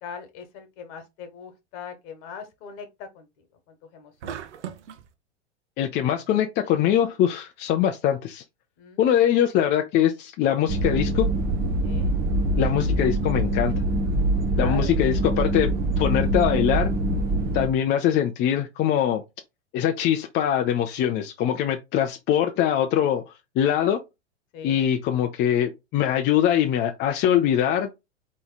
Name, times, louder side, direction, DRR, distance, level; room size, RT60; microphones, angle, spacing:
voice 1, 0.0-3.3 3.9-4.3 8.8-9.0 11.8-12.1 14.5-15.0 24.5-24.8, left 6 dB, 50° left, 1.5 m, -40 dB
sound 1, 4.2-5.1, right 8 dB, 75° right, 0.8 m, -37 dB
voice 2, 5.8-8.4 9.0-11.3 12.6-13.7 14.6-16.9 17.5-19.2 19.7-24.0 24.6-27.9, left 10 dB, 30° left, 0.5 m, -23 dB
sound 2, 10.7-17.7, right 1 dB, 25° right, 0.8 m, -24 dB
3.9 x 3.1 x 3.9 m
hypercardioid pair, 105°, 36 cm